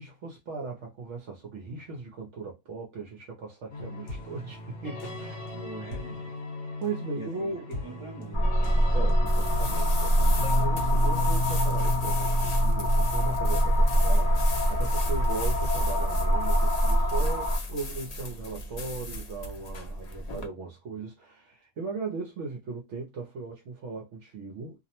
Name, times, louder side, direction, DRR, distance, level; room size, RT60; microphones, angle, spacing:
voice 1, 0.0-5.4 6.8-7.7 8.9-24.9, right 4 dB, 65° right, 0.8 m, -38 dB
sound 1, 3.7-16.3, left 2 dB, 55° left, 1.2 m, -36 dB
voice 2, 5.5-6.4 7.1-8.6, right 1 dB, 40° right, 0.4 m, -43 dB
sound 2, 8.3-17.6, equal, 35° left, 0.8 m, -24 dB
sound 3, 9.3-20.5, left 2 dB, 70° left, 0.3 m, -38 dB
2.5 x 2.0 x 2.7 m
omnidirectional pair, 1.5 m